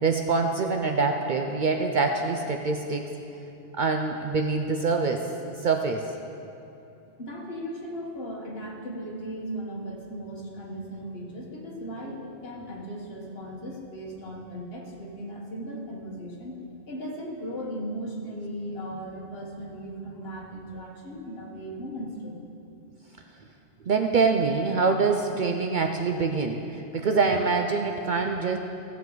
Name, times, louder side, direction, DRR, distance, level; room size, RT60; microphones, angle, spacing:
voice 1, 0.0-3.1 3.8-5.2 5.6-6.0 23.9-28.6, right 4 dB, 55° right, 4 dB, 0.6 m, -25 dB
voice 2, 7.2-22.4, equal, 60° left, -1 dB, 1.6 m, -37 dB
16.0 x 7.2 x 3.9 m, 2.8 s
omnidirectional pair, 1.2 m